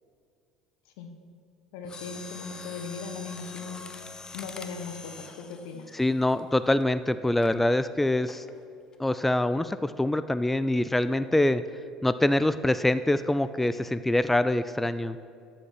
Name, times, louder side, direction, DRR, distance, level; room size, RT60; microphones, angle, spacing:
voice 1, 1.7-3.8 4.3-6.0, left 5 dB, 65° left, 5 dB, 1.4 m, -38 dB
Mechanisms, 1.8-6.8 7.4-7.6 8.3-8.6 8.9-9.0, left 4 dB, 30° left, 0.9 m, -44 dB
voice 2, 5.9-8.4 9.0-11.6 12.0-15.2, left 1 dB, 5° left, 13 dB, 0.4 m, -25 dB
13.0 x 5.9 x 5.8 m, 2.4 s
figure-of-eight pair, 65°, 3 cm